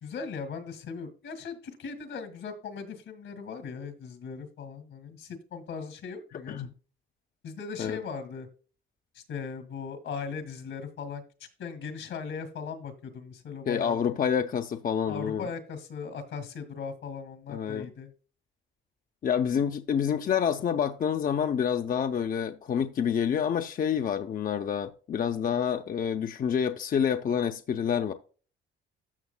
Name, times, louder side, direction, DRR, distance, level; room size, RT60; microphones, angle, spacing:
voice 1, 0.0-6.6 7.4-8.5 9.1-11.2 11.6-14.2 15.1-18.1, left 5 dB, 75° left, 1.9 m, -38 dB
voice 2, 13.7-15.5 17.5-17.9 19.2-28.1, left 8 dB, 45° left, 0.6 m, -28 dB
13.5 x 6.3 x 2.2 m
cardioid pair, 90°, 20 cm